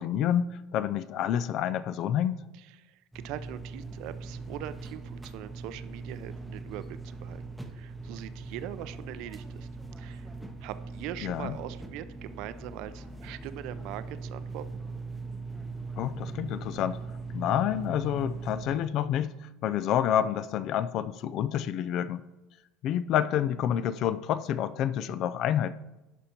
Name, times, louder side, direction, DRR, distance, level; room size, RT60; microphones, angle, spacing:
voice 1, 0.0-2.4 11.2-11.6 16.0-17.0 17.3-22.2 22.8-25.7, left 10 dB, 50° left, 15 dB, 0.4 m, -28 dB
voice 2, 2.8-7.4 7.7-9.7 10.0-10.3 10.6-14.8, right 12 dB, 65° right, 13 dB, 0.5 m, -41 dB
sound 1, 3.1-18.8, right 3 dB, 5° right, 0.7 m, -40 dB
11.0 x 5.2 x 4.4 m, 1.0 s
cardioid pair, 140°, 0 cm